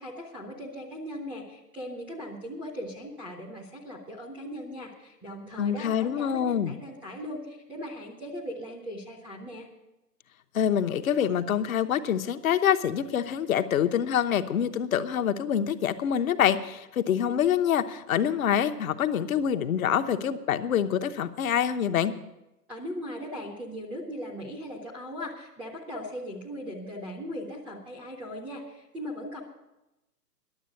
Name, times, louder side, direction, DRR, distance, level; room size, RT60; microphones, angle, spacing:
voice 1, 0.0-9.7 22.7-29.4, equal, 5° right, -3 dB, 0.4 m, -39 dB
voice 2, 5.6-6.7 10.5-22.1, left 9 dB, 55° left, 9 dB, 0.9 m, -26 dB
11.0 x 7.5 x 9.8 m, 0.95 s
hypercardioid pair, 130°, 49 cm